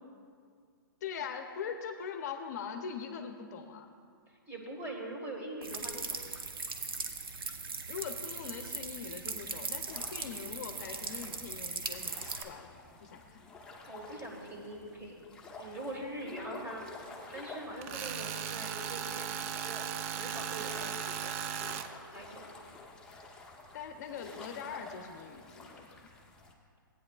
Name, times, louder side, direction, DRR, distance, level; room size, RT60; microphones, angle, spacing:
voice 1, 1.0-3.9 7.9-12.7 13.0-13.4 23.7-26.0, left 7 dB, 50° left, 5 dB, 0.7 m, -42 dB
voice 2, 4.5-6.2 11.1-11.3 13.9-15.2 15.6-16.8 17.2-19.9 20.2-22.5, right 1 dB, 15° right, 0 dB, 1.7 m, -43 dB
sound 1, 5.6-12.4, right 4 dB, 90° right, 0.9 m, -39 dB
sound 2, 9.8-26.5, left 3 dB, 5° left, 0.9 m, -51 dB
Tools, 17.8-21.9, right 9 dB, 40° right, 0.4 m, -37 dB
15.5 x 9.2 x 2.3 m, 2.2 s
hypercardioid pair, 145°, 12 cm